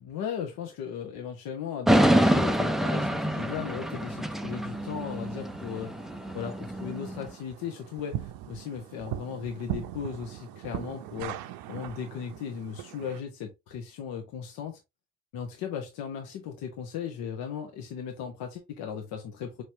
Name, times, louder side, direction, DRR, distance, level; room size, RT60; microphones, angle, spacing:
voice 1, 0.0-5.9 6.3-11.4 11.7-14.8 15.3-19.6, left 7 dB, 70° left, 1.0 m, -37 dB
sound 1, 1.9-7.2, right 1 dB, ahead, 0.3 m, -26 dB
sound 2, 3.4-13.2, right 12 dB, 70° right, 0.6 m, -41 dB
4.6 x 3.1 x 2.7 m
supercardioid pair, 65°, 38 cm